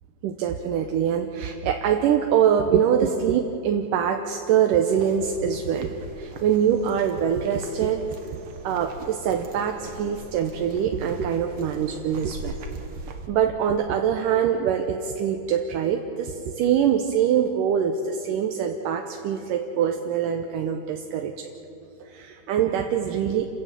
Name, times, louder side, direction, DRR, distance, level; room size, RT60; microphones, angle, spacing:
voice 1, 0.2-8.0 8.6-12.6 13.3-21.5 22.0-23.5, right 8 dB, 70° right, 4 dB, 2.3 m, -24 dB
sound 1, 4.8-13.3, right 3 dB, 50° right, 1.7 m, -41 dB
29.0 x 16.5 x 7.5 m, 3.0 s
omnidirectional pair, 4.3 m